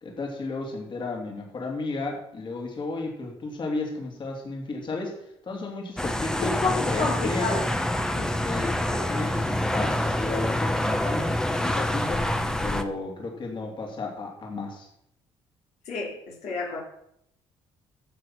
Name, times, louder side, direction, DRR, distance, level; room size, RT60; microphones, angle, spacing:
voice 1, 0.0-7.7 8.4-12.3 12.6-14.9, left 3 dB, 45° left, 0 dB, 3.2 m, -33 dB
sound 1, 6.0-12.8, left 1 dB, 5° left, 1.0 m, -26 dB
voice 2, 6.4-7.6 8.1-8.3 15.9-16.1 16.4-16.8, left 4 dB, 75° left, -2 dB, 3.1 m, -29 dB
13.0 x 7.2 x 5.9 m, 0.74 s
cardioid pair, 90°, 12 cm